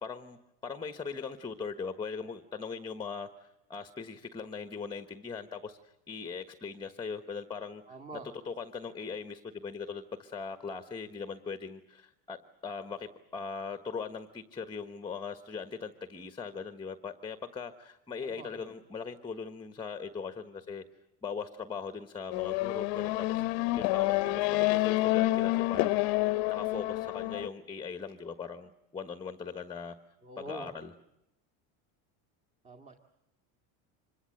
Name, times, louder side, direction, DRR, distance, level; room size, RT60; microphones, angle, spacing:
voice 1, 0.0-7.8 8.4-20.8 21.2-26.0 26.5-29.9 30.4-30.9, left 5 dB, 10° left, 10 dB, 1.2 m, -40 dB
voice 2, 7.9-8.3 18.2-18.7 30.2-30.7 32.6-33.0, right 1 dB, 15° right, 4 dB, 2.0 m, -45 dB
Race car auto racing / Accelerating revving vroom, 22.3-27.5, left 19 dB, 60° left, 0.9 m, -28 dB
26.0 x 22.5 x 7.8 m, 0.86 s
cardioid pair, 145°, 40 cm